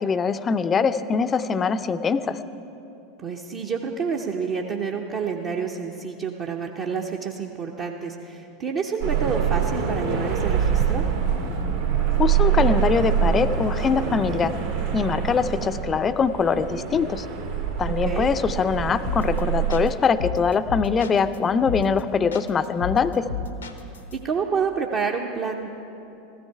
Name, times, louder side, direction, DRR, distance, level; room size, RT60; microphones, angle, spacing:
voice 1, 0.0-2.4 12.2-14.6 14.9-17.3 17.8-23.3, left 5 dB, 25° left, 12 dB, 0.5 m, -23 dB
voice 2, 3.2-11.1 17.9-18.3 24.1-25.7, right 5 dB, 40° right, 0 dB, 0.7 m, -28 dB
sound 1, 9.0-19.9, right 8 dB, 70° right, 2.1 m, -25 dB
sound 2, 19.1-19.4 19.7-21.4 21.7-22.0 22.3-24.1, left 5 dB, 80° left, 0.8 m, -31 dB
15.0 x 13.5 x 4.6 m, 2.9 s
figure-of-eight pair, 80°, 0 cm